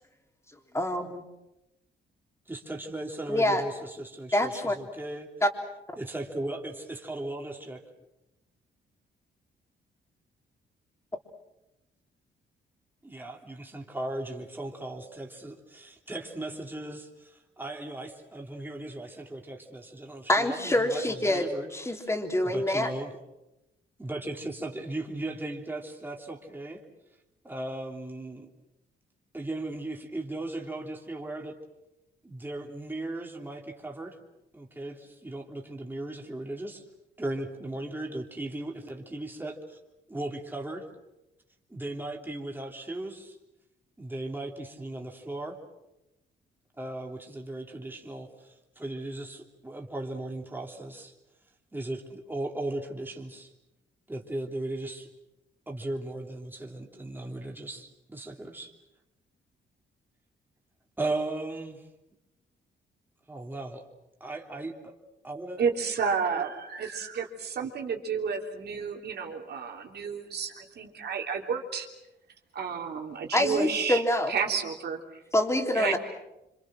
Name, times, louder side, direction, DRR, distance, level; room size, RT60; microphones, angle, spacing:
voice 1, 0.7-1.2 3.3-3.6 4.3-4.8 5.4-5.5 20.3-22.9 73.3-74.3 75.3-76.0, left 1 dB, 15° left, 4 dB, 3.4 m, -26 dB
voice 2, 2.5-5.3 6.0-7.8 13.0-22.1 22.4-23.1 24.0-26.8 27.4-28.5 29.3-31.6 32.2-34.2 34.5-36.8 37.2-39.8 40.1-40.8 41.7-43.4 44.0-45.6 46.8-51.1 51.7-53.5 54.1-55.1 55.7-58.7 61.0-61.8 63.3-63.8 64.2-65.0 65.2-65.6 66.3-66.4, right 2 dB, 10° right, 1 dB, 3.3 m, -37 dB
voice 3, 65.6-71.9 72.5-74.0 74.3-75.2 75.7-76.0, right 6 dB, 65° right, 2 dB, 3.4 m, -31 dB
27.5 x 25.5 x 6.4 m, 0.92 s
cardioid pair, 95°, 18 cm